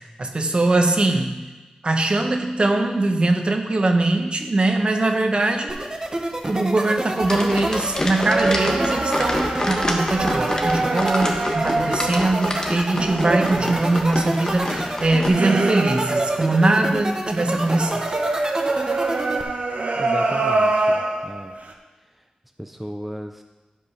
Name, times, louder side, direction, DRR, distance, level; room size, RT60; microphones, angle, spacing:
voice 1, 0.2-1.4 1.8-5.7 6.5-18.0, right 2 dB, 45° right, 4 dB, 1.1 m, -21 dB
sound 1, 5.7-19.4, right 1 dB, 25° right, 1.2 m, -28 dB
sound 2, 7.2-15.3, left 1 dB, 30° left, 1.3 m, -28 dB
sound 3, 8.1-16.9 17.4-21.7, right 2 dB, 70° right, 1.1 m, -25 dB
voice 2, 20.0-21.5 22.6-23.4, equal, 5° right, 5 dB, 0.5 m, -35 dB
12.0 x 5.3 x 5.6 m, 1.2 s
wide cardioid pair, 90°, 3 cm